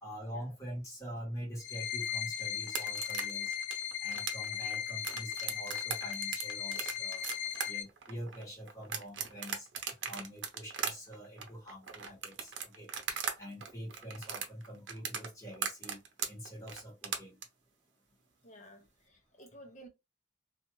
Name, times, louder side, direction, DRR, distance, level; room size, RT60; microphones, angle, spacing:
voice 1, 0.0-3.5 4.0-9.7 10.1-16.0 16.3-17.4, equal, 20° left, 1.3 m, -45 dB
sound 1, 1.6-7.8, left 9 dB, 75° left, 0.3 m, -37 dB
sound 2, 2.6-13.4 13.6-17.4, right 7 dB, 80° right, 0.6 m, -38 dB
voice 2, 18.4-19.9, right 1 dB, 40° left, 0.7 m, -54 dB
2.6 x 2.3 x 3.0 m
head